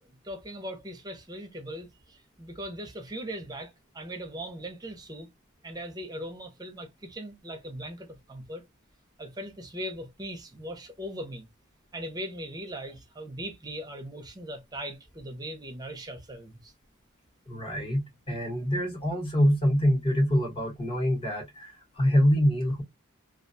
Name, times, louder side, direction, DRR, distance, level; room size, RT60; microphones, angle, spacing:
voice 1, 0.2-5.3 5.6-8.6 9.2-11.5 11.9-16.7, equal, 20° right, 0.6 m, -39 dB
voice 2, 17.5-18.0 18.3-22.8, equal, 25° left, 1.0 m, -25 dB
2.4 x 2.2 x 2.5 m
head